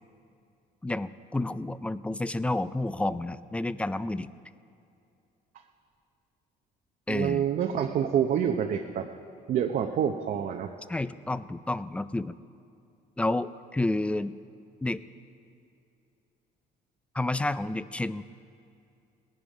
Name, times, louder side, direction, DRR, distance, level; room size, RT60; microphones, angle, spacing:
voice 1, 0.8-4.3 7.1-7.5 10.9-12.4 13.2-14.3 14.8-15.0 17.1-18.2, left 2 dB, 5° left, 15 dB, 0.4 m, -30 dB
voice 2, 7.1-9.1 9.5-10.7, right 8 dB, 55° right, 4 dB, 0.7 m, -27 dB
18.5 x 10.5 x 5.0 m, 2.5 s
cardioid pair, 110°, 17 cm